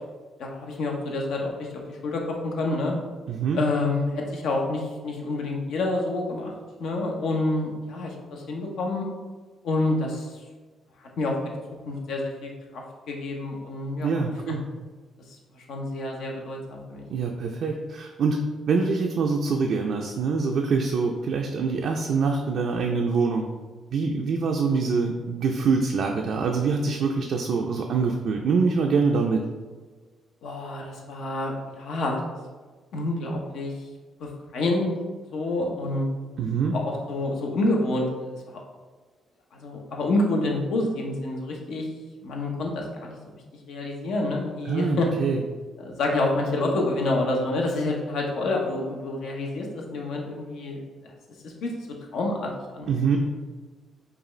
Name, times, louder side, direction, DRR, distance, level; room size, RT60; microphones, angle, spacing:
voice 1, 0.4-2.9 3.5-6.5 6.8-9.1 9.6-10.4 11.0-11.5 11.9-14.6 15.3-17.0 30.4-32.2 32.9-33.7 34.2-34.9 35.2-36.1 36.7-38.1 38.3-38.6 39.5-41.9 42.2-43.2 43.7-45.1 45.8-51.1 51.4-51.7 52.1-53.1, left 2 dB, 75° left, 0 dB, 0.8 m, -28 dB
voice 2, 3.3-3.6 14.0-14.6 17.1-18.4 18.7-23.5 23.9-29.4 36.4-36.7 44.7-45.4 52.9-53.2, right 5 dB, 65° right, 1 dB, 0.3 m, -24 dB
5.0 x 2.4 x 3.1 m, 1.3 s
cardioid pair, 90°, 0 cm